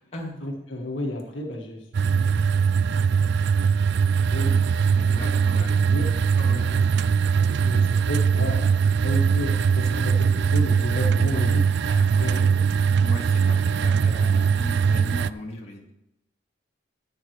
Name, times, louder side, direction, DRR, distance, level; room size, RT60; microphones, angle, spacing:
voice 1, 0.4-2.4 3.6-6.1 6.6-6.8 7.6-11.7 12.2-12.6, left 1 dB, 85° left, 1 dB, 1.9 m, -33 dB
sound 1, 1.9-15.3, right 6 dB, 65° right, 0.4 m, -21 dB
voice 2, 4.9-5.9 6.4-6.7 11.9-12.4 13.0-15.9, left 1 dB, 35° left, -2 dB, 2.2 m, -37 dB
15.0 x 9.3 x 3.3 m, 0.84 s
head